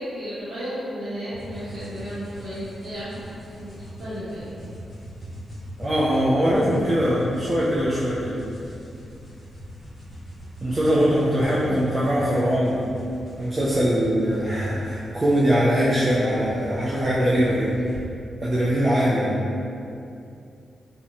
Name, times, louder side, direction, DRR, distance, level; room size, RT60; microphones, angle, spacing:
voice 1, 0.0-3.3 3.6-4.5 11.6-11.8, equal, 75° right, -14 dB, 0.7 m, -34 dB
sound 1, 1.3-18.0, equal, 50° left, 1.1 m, -41 dB
voice 2, 5.8-8.4 10.6-12.8 13.4-17.8 18.4-19.4, equal, 30° right, -7 dB, 0.4 m, -22 dB
2.5 x 2.1 x 2.9 m, 2.6 s
cardioid pair, 65°, 0 cm